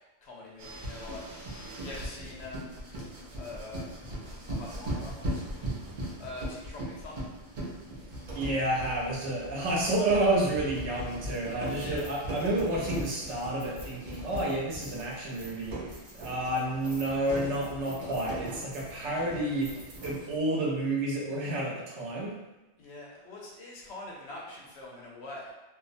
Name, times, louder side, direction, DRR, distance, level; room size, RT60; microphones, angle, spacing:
voice 1, 0.2-2.8 3.4-5.8 6.2-7.4 11.7-12.2 22.8-25.5, left 2 dB, 70° left, -3 dB, 0.9 m, -44 dB
sound 1, 0.6-20.4, right 1 dB, 50° right, 0.6 m, -39 dB
Hammer, 2.4-2.7 3.0-6.6 8.3-15.2 15.8-17.7, left 1 dB, 25° left, 0.5 m, -52 dB
voice 2, 8.3-15.9 16.2-19.7 20.0-22.4, right 1 dB, 80° right, -4 dB, 1.0 m, -30 dB
2.5 x 2.0 x 2.5 m, 1.1 s
omnidirectional pair, 1.2 m